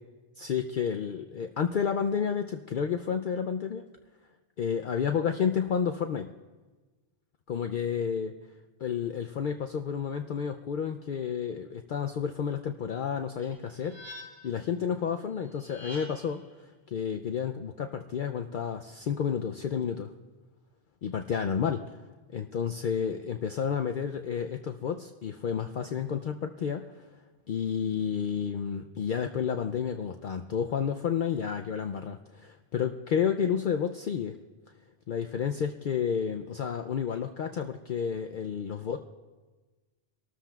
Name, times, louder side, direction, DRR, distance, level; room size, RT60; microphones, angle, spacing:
voice 1, 0.4-3.8 4.6-6.3 7.5-8.3 8.8-16.4 16.9-20.1 21.0-22.0 22.3-27.0 27.5-34.4 35.1-39.0, left 7 dB, 60° left, 5 dB, 0.6 m, -31 dB
sound 1, 13.4-14.6 15.6-16.4, left 1 dB, 25° right, 4.1 m, -46 dB
25.0 x 13.0 x 2.3 m, 1.3 s
omnidirectional pair, 1.2 m